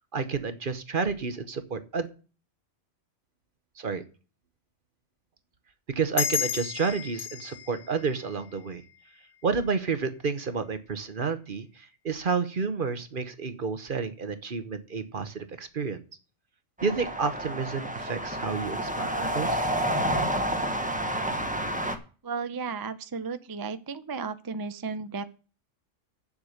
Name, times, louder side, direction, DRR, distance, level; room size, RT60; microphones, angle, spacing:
voice 1, 0.1-2.1 3.8-4.0 5.9-8.8 9.4-16.0 16.8-19.7, right 5 dB, 45° right, 10 dB, 1.0 m, -30 dB
sound 1, 6.2-9.3, left 8 dB, 65° left, 0.8 m, -33 dB
sound 2, 16.8-22.0, right 1 dB, 5° right, 0.9 m, -29 dB
voice 2, 22.2-25.2, right 5 dB, 30° right, 11 dB, 0.4 m, -34 dB
8.1 x 7.4 x 6.4 m, 0.36 s
omnidirectional pair, 1.3 m